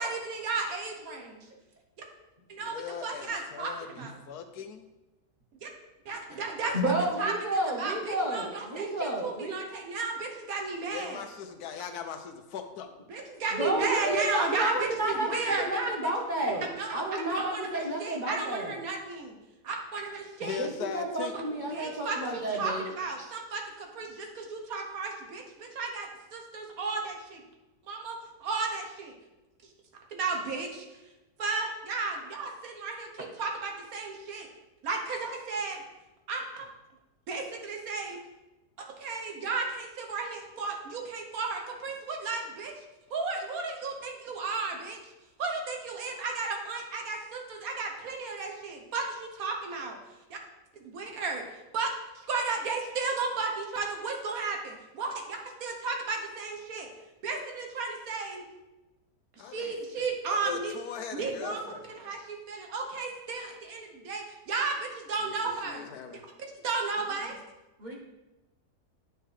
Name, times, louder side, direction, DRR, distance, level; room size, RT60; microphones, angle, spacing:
voice 1, 0.0-1.5 2.5-4.1 5.6-5.7 6.0-6.9 7.2-11.2 13.1-15.9 16.4-19.4 19.6-20.6 21.7-27.4 27.9-29.1 30.1-31.0 31.4-34.5 34.8-35.8 36.3-36.7 37.3-38.2 39.0-42.8 43.1-45.1 45.4-50.0 50.3-50.4 50.7-56.9 57.2-58.5 59.4-60.7 61.1-61.6 61.9-65.9 66.1-66.2 66.6-67.4, right 4 dB, 65° right, 2 dB, 1.4 m, -34 dB
voice 2, 2.6-4.9 10.9-12.9 20.4-21.3 59.4-59.7 60.5-61.9 65.2-65.3 65.6-66.2, left 8 dB, 75° left, 7 dB, 1.2 m, -39 dB
voice 3, 6.7-9.5 13.5-16.6 16.9-18.8 20.6-22.8 67.8-68.0, right 1 dB, 35° right, 0 dB, 0.9 m, -31 dB
9.4 x 4.5 x 3.3 m, 1.0 s
omnidirectional pair, 1.7 m